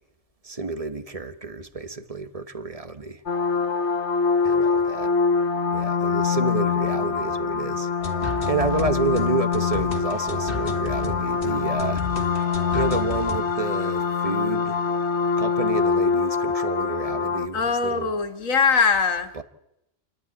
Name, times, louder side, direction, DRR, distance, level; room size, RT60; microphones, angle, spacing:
voice 1, 0.4-3.2 4.4-5.1 5.7-7.9 8.5-12.0 12.7-14.8 15.4-18.1 19.3-19.4, right 3 dB, 30° right, 1.2 m, -29 dB
sound 1, 3.3-17.5, left 5 dB, 60° left, 1.2 m, -24 dB
sound 2, 8.0-13.4, left 2 dB, 45° left, 2.1 m, -32 dB
voice 2, 17.5-19.3, left 5 dB, 85° left, 1.9 m, -21 dB
29.0 x 11.0 x 9.7 m
omnidirectional pair, 1.3 m